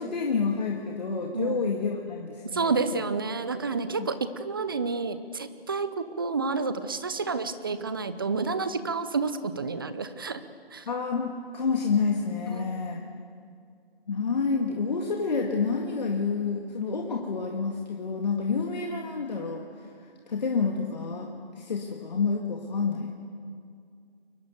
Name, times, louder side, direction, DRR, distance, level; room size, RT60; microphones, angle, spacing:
voice 1, 0.0-2.7 4.0-4.1 10.9-13.0 14.1-19.7 20.3-23.1, left 5 dB, 45° left, 0 dB, 2.1 m, -29 dB
voice 2, 1.3-1.7 2.5-10.4 10.7-10.9 12.5-12.7, right 4 dB, 20° right, 12 dB, 0.7 m, -30 dB
30.0 x 23.0 x 7.0 m, 2.2 s
figure-of-eight pair, 160°, 31 cm